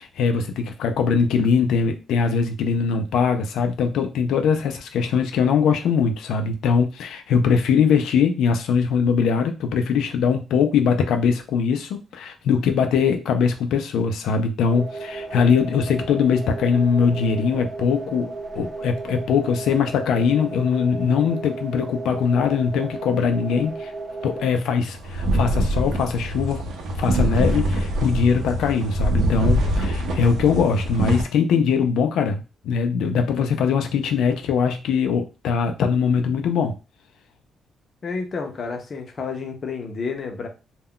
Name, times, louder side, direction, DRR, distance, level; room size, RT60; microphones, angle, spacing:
voice 1, 0.0-23.9 24.2-26.6 27.0-36.7, left 6 dB, 90° left, 6 dB, 0.4 m, -21 dB
sound 1, 14.7-24.5, right 3 dB, 20° right, 0.3 m, -34 dB
sound 2, 25.0-31.2, right 1 dB, 85° right, 0.6 m, -24 dB
voice 2, 38.0-40.5, left 4 dB, 35° left, 3 dB, 0.5 m, -30 dB
2.2 x 2.1 x 3.6 m, 0.30 s
cardioid pair, 170°, 0 cm